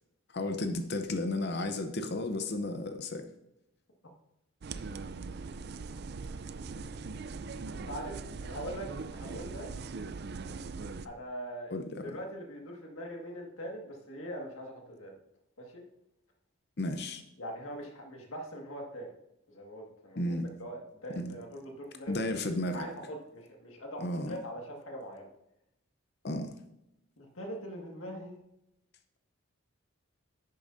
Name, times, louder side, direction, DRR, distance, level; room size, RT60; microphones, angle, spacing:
voice 1, 0.3-3.2 11.7-12.0 16.8-17.2 20.2-20.5 21.2-21.3 22.1-22.9 24.0-24.4 26.2-26.5, left 2 dB, 50° left, 7 dB, 0.7 m, -33 dB
sound 1, 4.6-11.1, right 4 dB, 50° right, 0.4 m, -40 dB
voice 2, 7.7-9.7 11.0-11.8 12.0-15.1 15.6-15.8 17.4-19.1 19.5-22.2 22.7-25.3 27.2-28.3, equal, 70° left, 1 dB, 1.8 m, -42 dB
11.0 x 8.6 x 2.6 m, 0.85 s
head